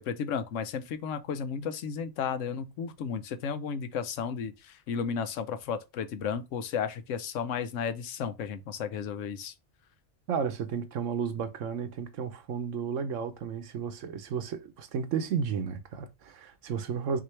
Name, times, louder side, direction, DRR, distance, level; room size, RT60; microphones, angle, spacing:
voice 1, 0.0-9.5, left 6 dB, 90° left, 1.0 m, -33 dB
voice 2, 10.3-17.2, right 6 dB, 85° right, 1.1 m, -33 dB
5.9 x 2.7 x 3.1 m
omnidirectional pair, 1.3 m